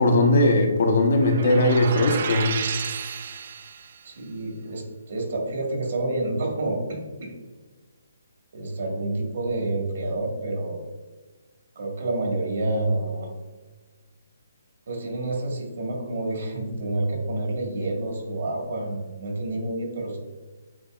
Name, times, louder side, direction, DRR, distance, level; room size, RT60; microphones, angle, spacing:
voice 1, 0.0-2.5, left 1 dB, 60° left, 3 dB, 0.8 m, -19 dB
sound 1, 1.2-4.0, right 7 dB, 45° right, 0.3 m, -32 dB
voice 2, 4.0-7.3 8.5-10.8 11.7-13.3 14.9-20.2, right 2 dB, 60° right, 1 dB, 1.4 m, -28 dB
7.9 x 2.8 x 2.4 m, 1.3 s
hypercardioid pair, 160°, 0 cm